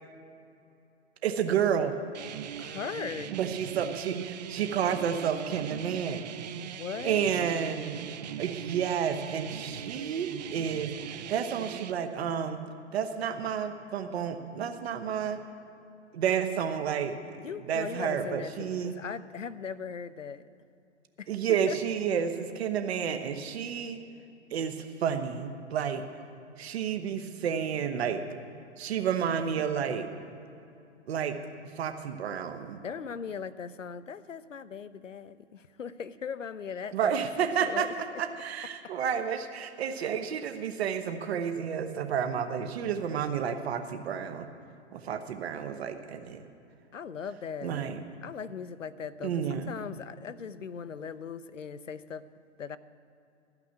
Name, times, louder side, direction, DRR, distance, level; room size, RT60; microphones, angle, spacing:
voice 1, 1.2-1.9 3.3-6.3 7.0-8.1 8.4-12.6 12.9-15.4 16.1-19.0 21.3-24.0 24.5-26.0 26.6-28.2 28.8-30.1 31.1-31.4 31.8-32.8 36.9-37.9 38.2-44.5 44.9-46.4 47.6-48.0 49.2-49.7, right 8 dB, 55° right, 8 dB, 1.0 m, -30 dB
sound 1, 2.1-11.9, right 10 dB, 35° right, 0.4 m, -40 dB
voice 2, 2.6-3.4 6.6-7.2 17.4-20.4 21.2-21.3 21.7-21.8 32.8-37.1 37.6-38.2 46.9-47.9 48.2-52.3 52.6-52.8, left 6 dB, 90° left, 15 dB, 0.6 m, -39 dB
13.0 x 5.9 x 9.1 m, 2.7 s
figure-of-eight pair, 120°, 37 cm